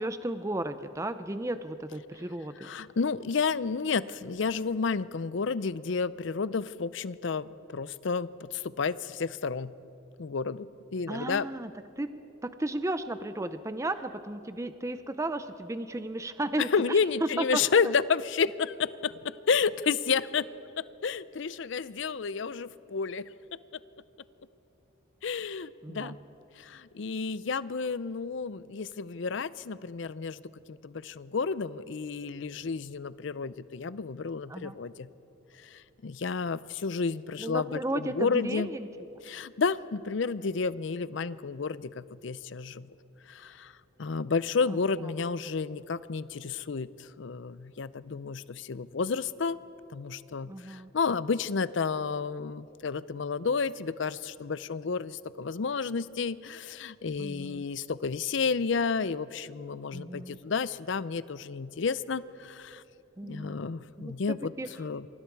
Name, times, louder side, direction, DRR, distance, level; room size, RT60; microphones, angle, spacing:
voice 1, 0.0-2.7 11.1-11.7 12.0-12.1 12.4-17.6 25.8-26.2 34.5-34.8 37.4-38.9 44.7-45.1 50.5-50.9 57.2-57.7 59.9-60.4 63.2-63.6 64.0-64.7, right 1 dB, 15° right, 11 dB, 0.5 m, -34 dB
voice 2, 2.6-9.7 10.2-11.5 16.6-20.5 21.0-23.3 25.2-26.2 26.6-30.4 30.7-35.1 35.6-38.7 39.2-42.9 43.3-43.7 44.0-49.6 49.9-62.8 63.3-64.5 64.8-65.1, left 5 dB, 60° left, 17 dB, 0.5 m, -31 dB
28.0 x 24.0 x 4.7 m, 2.9 s
head